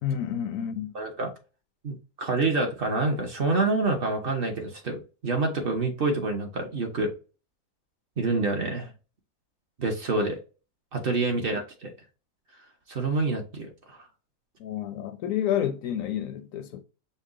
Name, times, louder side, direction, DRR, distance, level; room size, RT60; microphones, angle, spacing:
voice 1, 0.0-0.9 14.6-16.8, left 10 dB, 70° left, 0.9 m, -29 dB
voice 2, 0.9-1.3 1.8-7.1 8.2-8.9 9.8-10.4 10.9-11.9 12.9-14.0, right 3 dB, 45° right, 0.8 m, -27 dB
5.3 x 2.1 x 3.6 m
omnidirectional pair, 1.7 m